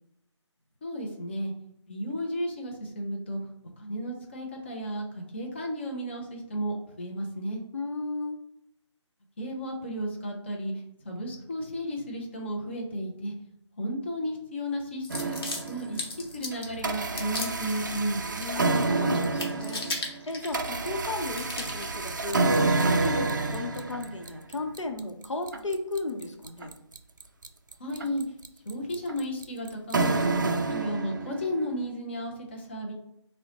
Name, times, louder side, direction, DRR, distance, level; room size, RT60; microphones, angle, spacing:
voice 1, 0.8-1.5 1.9-3.4 3.8-7.6 9.4-10.7 11.0-13.3 13.8-15.4 15.7-18.2 27.8-28.2 28.6-30.4 30.7-32.9, equal, 25° left, 0 dB, 0.5 m, -33 dB
voice 2, 7.7-8.4 18.3-19.9 20.3-26.8, left 2 dB, 80° left, 4 dB, 0.8 m, -35 dB
sound 1, 15.0-16.7 17.2-17.9 18.3-18.9 19.1-21.0 21.3-21.9, left 2 dB, 50° left, 1.0 m, -37 dB
sound 2, 15.1-16.0 16.5-31.6, right 3 dB, 40° right, 0.3 m, -29 dB
5.2 x 2.1 x 2.8 m, 0.79 s
figure-of-eight pair, 165°, 16 cm